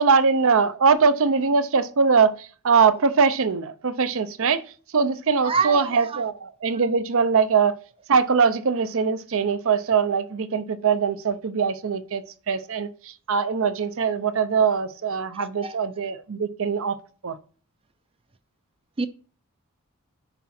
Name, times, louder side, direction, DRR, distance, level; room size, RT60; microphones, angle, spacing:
voice 1, 0.0-4.6 4.9-7.8 8.1-17.0 17.2-17.4, right 5 dB, 65° right, 0.6 m, -22 dB
voice 2, 5.4-6.2 15.6-15.7 19.0-19.1, right 5 dB, 25° right, 0.4 m, -26 dB
9.7 x 4.8 x 4.2 m
head